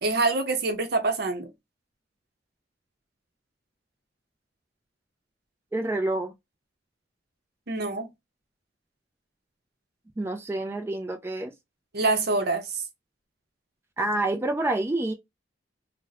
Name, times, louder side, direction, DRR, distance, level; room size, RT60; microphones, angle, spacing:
voice 1, 0.0-1.5 7.7-8.1 11.9-12.8, right 3 dB, 60° right, 0.7 m, -25 dB
voice 2, 5.7-6.3 10.2-11.5 14.0-15.1, right 2 dB, 15° right, 0.3 m, -28 dB
2.5 x 2.1 x 3.9 m
head